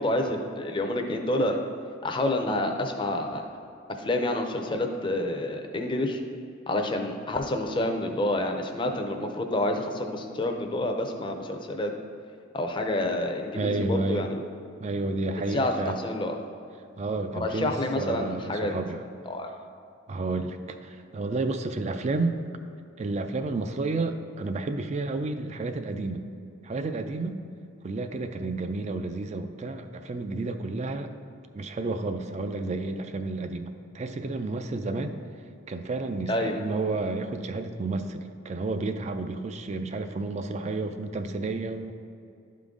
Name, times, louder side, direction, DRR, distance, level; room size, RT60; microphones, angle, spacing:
voice 1, 0.0-1.6 2.0-3.4 4.0-6.2 6.7-11.9 12.5-14.4 15.5-15.7 16.0-16.4 17.3-18.7 19.3-19.5 36.3-36.6, left 1 dB, 25° left, 3 dB, 0.5 m, -28 dB
voice 2, 13.5-14.3 14.8-16.0 17.0-19.0 20.1-22.4 23.0-26.2 26.6-27.4 27.8-31.1 31.5-35.2 35.7-41.9, right 3 dB, 35° right, 8 dB, 0.4 m, -31 dB
11.5 x 3.8 x 3.6 m, 2.5 s
head